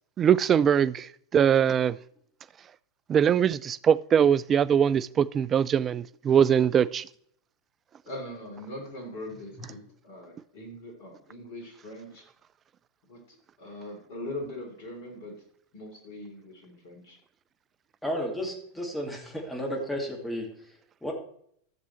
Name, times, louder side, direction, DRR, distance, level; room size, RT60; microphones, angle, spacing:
voice 1, 0.2-1.1 1.3-2.0 3.1-7.0, right 8 dB, 25° right, 17 dB, 0.3 m, -22 dB
voice 2, 8.1-12.2 13.1-15.3 15.7-17.2, left 1 dB, 55° left, 1 dB, 3.4 m, -41 dB
voice 3, 18.0-21.1, equal, 5° left, -1 dB, 2.0 m, -33 dB
13.5 x 6.7 x 3.2 m, 0.65 s
figure-of-eight pair, 90°, 0 cm